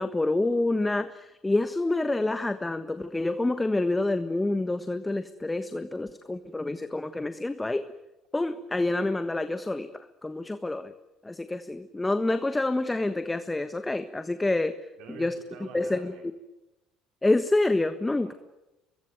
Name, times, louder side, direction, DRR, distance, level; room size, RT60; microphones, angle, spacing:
voice 1, 0.0-7.9 8.3-10.9 11.2-14.8 15.1-15.4 15.7-16.3 17.2-18.3, left 2 dB, 15° left, 11 dB, 1.4 m, -27 dB
voice 2, 15.0-16.3 18.2-18.3, right 6 dB, 70° right, 4 dB, 3.6 m, -47 dB
24.5 x 22.5 x 9.3 m, 1.0 s
hypercardioid pair, 65°, 0 cm